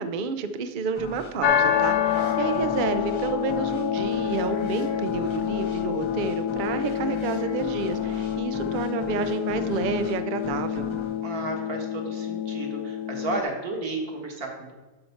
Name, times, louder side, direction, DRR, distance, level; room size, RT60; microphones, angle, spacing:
voice 1, 0.0-10.9, right 5 dB, 80° right, 9 dB, 0.4 m, -30 dB
sound 1, 0.9-12.4, left 2 dB, 30° left, 0.5 m, -40 dB
sound 2, 1.4-13.4, left 9 dB, 75° left, 1.1 m, -27 dB
voice 2, 2.1-2.7 11.2-14.7, right 2 dB, 60° right, 0 dB, 2.1 m, -33 dB
12.0 x 4.3 x 5.8 m, 1.2 s
omnidirectional pair, 1.8 m